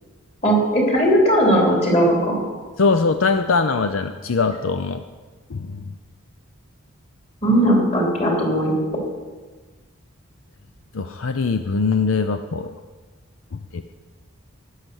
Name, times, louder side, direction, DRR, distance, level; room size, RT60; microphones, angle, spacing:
voice 1, 0.4-2.4 7.4-8.7, equal, 30° left, -2 dB, 3.3 m, -18 dB
voice 2, 2.8-5.0 5.5-5.8 10.9-12.7 13.7-13.8, left 4 dB, 70° left, 8 dB, 0.6 m, -21 dB
13.0 x 10.0 x 6.3 m, 1.3 s
head